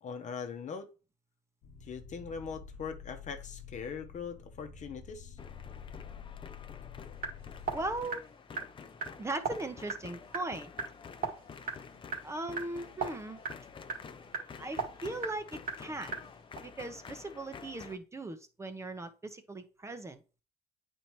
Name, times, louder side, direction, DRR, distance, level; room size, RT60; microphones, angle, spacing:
voice 1, 0.0-0.9 1.8-5.4, left 6 dB, 45° left, 1.0 m, -41 dB
sound 1, 1.6-8.0, left 7 dB, 75° left, 1.0 m, -48 dB
sound 2, 5.4-18.0, left 6 dB, 30° left, 0.6 m, -49 dB
sound 3, 7.1-16.6, right 4 dB, 55° right, 1.9 m, -41 dB
voice 2, 7.7-8.2 9.2-10.7 12.2-13.4 14.6-16.1 16.6-20.2, right 2 dB, 15° right, 0.9 m, -38 dB
8.9 x 4.5 x 3.1 m
cardioid pair, 110°, 17 cm